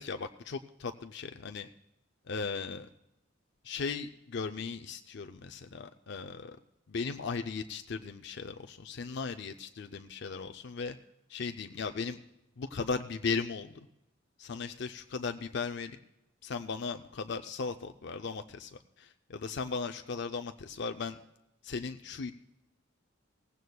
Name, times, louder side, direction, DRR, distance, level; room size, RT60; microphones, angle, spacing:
voice 1, 0.0-1.7 2.2-2.9 3.6-6.6 6.9-11.0 11.3-12.2 12.6-13.9 14.4-16.0 16.4-21.2 21.6-22.3, left 4 dB, 60° left, 7 dB, 0.5 m, -37 dB
18.5 x 16.0 x 2.3 m, 0.88 s
head